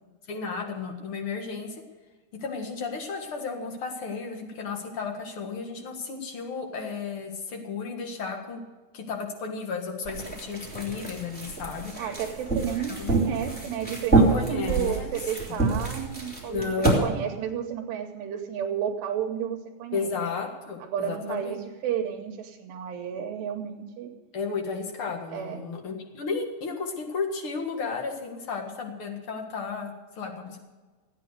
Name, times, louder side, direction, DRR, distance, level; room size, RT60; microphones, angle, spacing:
voice 1, 0.3-1.8 2.4-8.6 8.9-11.9 12.9-13.1 14.1-15.1 16.5-17.1 19.9-21.6 24.3-30.6, left 5 dB, 60° left, 3 dB, 1.4 m, -33 dB
sound 1, 10.0-17.0, right 3 dB, 5° left, 2.1 m, -27 dB
voice 2, 12.0-20.1 20.8-24.1 25.3-25.6, right 9 dB, 75° right, 3 dB, 3.0 m, -32 dB
15.5 x 9.7 x 6.6 m, 1.2 s
omnidirectional pair, 5.2 m